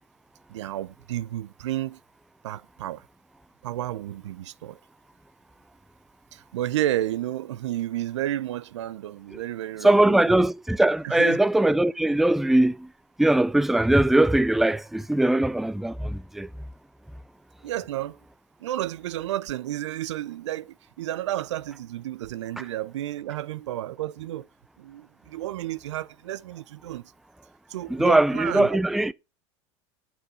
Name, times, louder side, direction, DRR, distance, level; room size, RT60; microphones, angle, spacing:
voice 1, 0.5-2.0 2.4-3.0 3.6-4.8 6.3-10.5 11.0-11.4 17.6-18.2 18.6-24.5 24.8-27.1 27.7-28.8, right 13 dB, 85° right, 0.5 m, -31 dB
voice 2, 9.8-12.9 13.2-16.5 22.6-22.7 27.9-29.1, right 1 dB, ahead, 0.4 m, -21 dB
8.0 x 6.3 x 4.7 m
hypercardioid pair, 90°, 15 cm